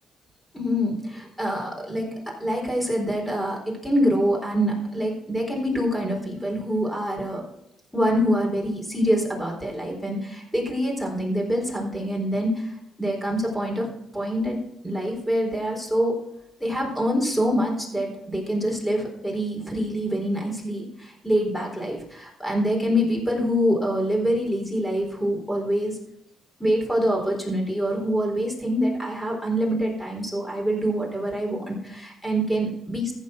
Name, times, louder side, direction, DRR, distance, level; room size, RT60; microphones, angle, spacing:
voice 1, 0.5-7.4 7.9-13.9 14.1-14.6 14.8-16.2 16.6-26.0 26.6-33.1, equal, 5° left, -1 dB, 4.2 m, -25 dB
15.0 x 5.3 x 6.2 m, 0.79 s
cardioid pair, 90°, 0 cm